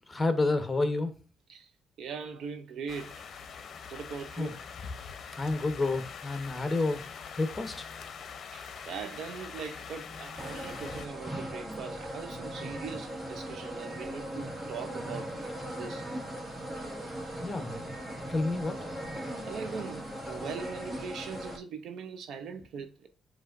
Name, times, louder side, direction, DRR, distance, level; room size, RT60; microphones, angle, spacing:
voice 1, 0.1-1.1 4.4-4.5 5.3-7.0 7.4-7.9 17.4-17.8 18.3-18.9, left 2 dB, 20° left, 0.9 m, -29 dB
voice 2, 2.0-3.2 3.9-4.6 8.5-8.6 8.9-15.4 15.7-16.1 19.4-23.1, right 6 dB, 70° right, 0.6 m, -41 dB
sound 1, 2.9-11.1, left 6 dB, 55° left, 0.6 m, -43 dB
sound 2, 10.4-21.6, right 1 dB, 35° right, 1.7 m, -39 dB
7.3 x 2.7 x 2.5 m
cardioid pair, 90°, 0 cm